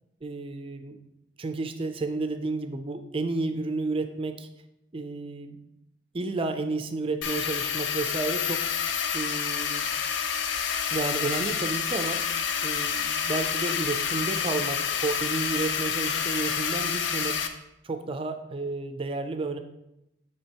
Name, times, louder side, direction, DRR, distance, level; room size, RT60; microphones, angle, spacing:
voice 1, 0.2-1.0 1.4-4.5 4.9-5.6 6.1-8.7 9.1-9.9 10.9-12.2 12.6-17.4 17.8-19.6, right 3 dB, 30° right, 8 dB, 0.4 m, -31 dB
sound 1, 7.2-17.5, left 7 dB, 75° left, 0.5 m, -28 dB
9.8 x 3.4 x 2.9 m, 0.86 s
head